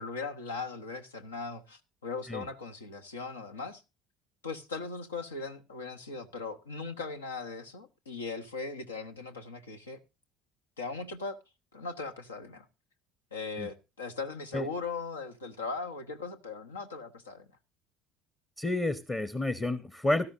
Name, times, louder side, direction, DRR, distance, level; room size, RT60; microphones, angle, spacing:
voice 1, 0.0-3.8 4.4-10.0 10.8-11.4 11.7-12.7 13.3-17.5, left 4 dB, 85° left, 1.0 m, -39 dB
voice 2, 18.6-20.3, left 2 dB, 20° left, 1.0 m, -30 dB
16.5 x 13.0 x 2.6 m
hypercardioid pair, 65°, 0 cm